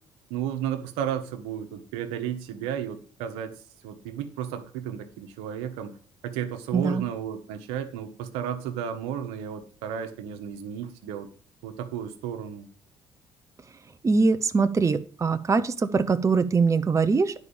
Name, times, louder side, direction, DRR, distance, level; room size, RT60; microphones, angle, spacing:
voice 1, 0.3-3.5 3.8-5.9 6.2-11.3 11.6-12.7, right 9 dB, 85° right, 7 dB, 1.2 m, -33 dB
voice 2, 6.7-7.0 14.0-17.3, right 4 dB, 30° right, 10 dB, 0.8 m, -22 dB
9.6 x 4.9 x 7.1 m, 0.43 s
supercardioid pair, 65°, 10 cm